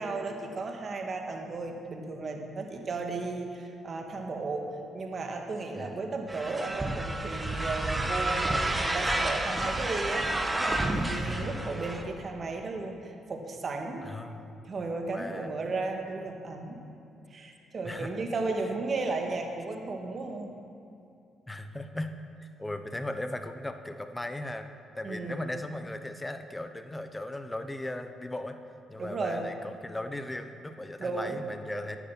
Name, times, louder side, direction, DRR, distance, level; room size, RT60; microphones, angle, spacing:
voice 1, 0.0-14.1 14.6-16.8 17.3-20.5 25.0-25.4 29.0-29.5 31.0-31.4, right 3 dB, 45° right, 3 dB, 1.7 m, -34 dB
voice 2, 5.7-6.3 11.2-11.6 14.0-14.6 15.1-15.5 17.8-18.2 21.5-22.1 22.4-28.6 28.9-32.0, left 1 dB, 15° left, 8 dB, 0.8 m, -37 dB
sound 1, 6.3-12.0, right 1 dB, 20° right, 1.2 m, -30 dB
11.0 x 9.3 x 5.8 m, 2.6 s
supercardioid pair, 65°, 0 cm